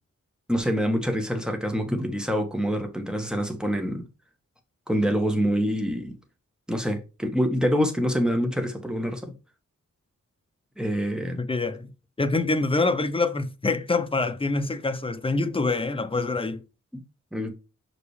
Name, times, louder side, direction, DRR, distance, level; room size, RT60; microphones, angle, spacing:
voice 1, 0.5-4.0 4.9-6.1 6.7-9.3 10.8-11.4 16.9-17.0 17.3-17.5, equal, 5° right, 1.5 m, -26 dB
voice 2, 11.4-11.9 12.2-16.6, left 3 dB, 20° left, 0.7 m, -25 dB
5.9 x 5.2 x 3.3 m
wide cardioid pair, 85°, 30 cm